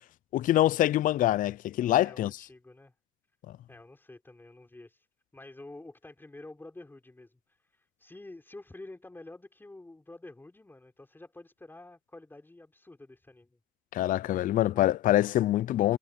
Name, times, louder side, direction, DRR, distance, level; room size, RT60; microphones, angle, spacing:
voice 1, 0.3-2.3 13.9-16.0, left 13 dB, 50° left, 0.4 m, -25 dB
voice 2, 2.0-2.9 3.7-5.0 5.3-7.4 7.7-13.6 14.5-14.8, left 2 dB, 10° left, 4.9 m, -49 dB
cardioid pair, 110°, 17 cm